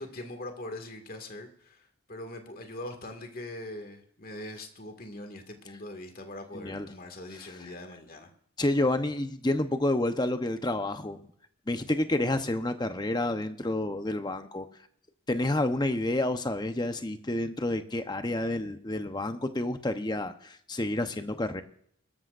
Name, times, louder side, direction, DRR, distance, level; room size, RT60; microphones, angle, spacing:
voice 1, 0.0-8.3, left 1 dB, 45° left, 5 dB, 2.0 m, -42 dB
voice 2, 6.5-6.9 8.6-11.2 11.7-14.7 15.3-21.6, left 1 dB, 20° left, 8 dB, 0.9 m, -29 dB
22.0 x 13.5 x 2.6 m, 0.65 s
head